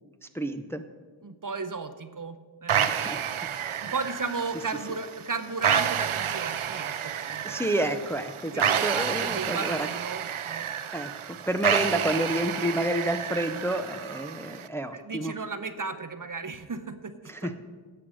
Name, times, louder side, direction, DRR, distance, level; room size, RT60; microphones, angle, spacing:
voice 1, 0.3-0.8 2.9-3.2 3.8-3.9 7.4-9.9 10.9-15.3 17.3-17.6, right 1 dB, 5° left, 7 dB, 0.6 m, -29 dB
voice 2, 1.2-2.9 3.8-7.7 8.5-10.7 14.9-17.5, right 4 dB, 40° right, 10 dB, 0.7 m, -34 dB
sound 1, 2.7-14.7, right 9 dB, 80° right, 0.6 m, -30 dB
11.5 x 7.9 x 6.2 m, 1.5 s
wide cardioid pair, 60°, 49 cm